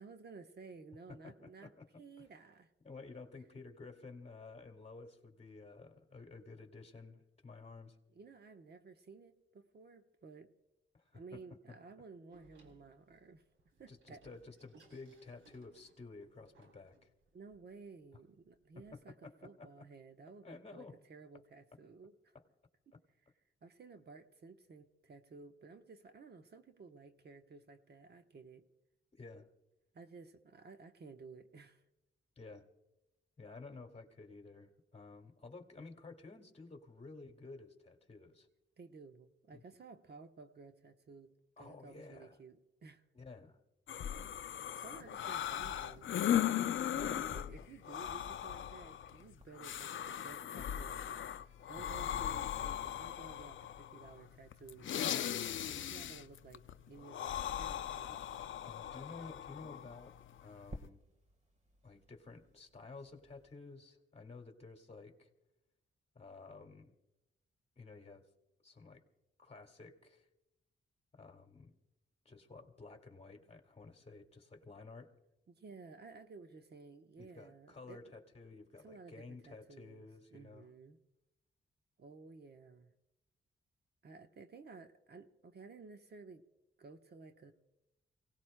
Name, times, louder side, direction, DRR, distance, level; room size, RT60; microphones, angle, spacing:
voice 1, 0.0-1.7 2.0-2.7 8.1-10.5 11.1-13.4 13.8-14.2 17.3-22.3 22.9-23.0 23.6-28.6 29.9-31.8 38.8-41.3 41.6-43.0 44.7-46.1 46.9-51.2 51.7-54.9 55.6-58.2 75.5-78.0 78.8-81.0 82.0-82.9 84.0-86.4 86.8-87.5, right 4 dB, 55° right, 6 dB, 1.0 m, -55 dB
voice 2, 1.1-2.3 2.8-8.0 10.9-11.8 13.9-17.1 18.8-19.7 20.4-21.0 29.1-29.5 32.4-32.7 33.4-38.5 39.5-39.6 41.6-42.4 43.1-43.6 46.9-47.4 51.8-52.0 58.6-61.0 61.8-65.3 66.1-67.0 67.8-68.3 68.6-69.0 69.4-70.3 71.1-71.7 72.3-75.1 77.2-80.7, left 3 dB, 30° left, 4 dB, 2.1 m, -53 dB
Door, 12.3-18.9, right 2 dB, 90° right, 2.9 m, -67 dB
sound 1, 43.9-60.9, left 10 dB, 70° left, 0.5 m, -39 dB
sound 2, 45.2-63.5, right 1 dB, 35° right, 1.5 m, -61 dB
28.5 x 18.0 x 2.2 m, 0.95 s
cardioid pair, 100°, 21 cm